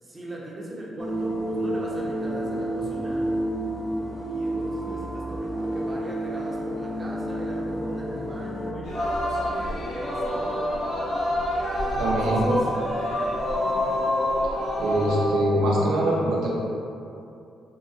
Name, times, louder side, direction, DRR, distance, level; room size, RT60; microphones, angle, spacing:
voice 1, 0.0-3.3 4.3-10.8 11.8-13.2 13.6-14.0, right 1 dB, 30° right, -4 dB, 0.9 m, -39 dB
sound 1, 1.0-8.7, right 1 dB, 15° left, 0.6 m, -30 dB
sound 2, 1.3-13.2, right 1 dB, 35° left, 1.1 m, -44 dB
Singing, 8.8-15.3, left 1 dB, 80° left, 1.5 m, -26 dB
voice 2, 12.0-12.6 14.8-16.5, right 1 dB, 75° right, -5 dB, 0.7 m, -23 dB
3.8 x 2.9 x 2.7 m, 2.6 s
hypercardioid pair, 45°, 0 cm